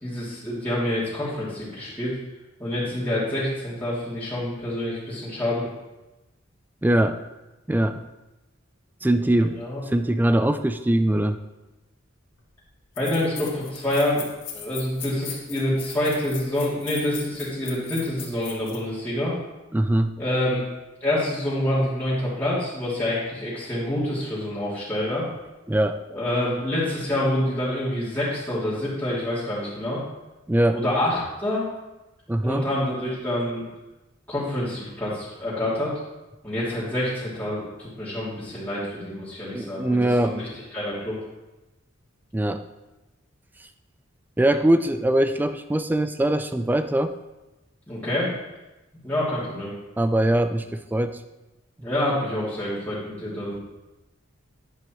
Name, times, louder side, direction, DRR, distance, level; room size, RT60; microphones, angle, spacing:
voice 1, 0.0-2.2 2.6-5.7 9.3-9.8 13.0-14.2 14.5-19.3 20.2-20.6 21.0-25.2 26.1-30.0 30.7-31.7 32.4-33.6 34.3-35.9 36.4-41.2 47.9-48.3 49.0-49.7 51.8-53.6, left 1 dB, 10° left, -11 dB, 2.8 m, -27 dB
voice 2, 6.8-7.2 7.7-8.0 9.0-11.4 19.7-20.2 25.7-26.0 30.5-30.8 32.3-32.7 39.5-40.4 42.3-42.6 44.4-47.2 50.0-51.2, right 1 dB, 10° right, 10 dB, 0.3 m, -22 dB
sound 1, 12.4-12.5 13.0-18.8, left 8 dB, 65° left, 1.8 m, -38 dB
11.5 x 10.0 x 3.1 m, 1.1 s
head